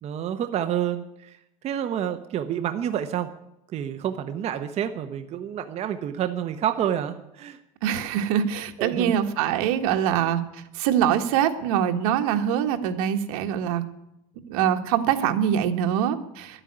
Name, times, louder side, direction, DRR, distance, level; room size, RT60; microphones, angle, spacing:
voice 1, 0.0-1.3 1.6-3.3 3.7-7.6 8.8-9.2, right 10 dB, 35° right, 8 dB, 0.9 m, -28 dB
voice 2, 7.8-13.8 14.5-16.6, right 9 dB, 90° right, 7 dB, 1.5 m, -24 dB
11.5 x 9.0 x 9.8 m, 0.84 s
cardioid pair, 145°, 18 cm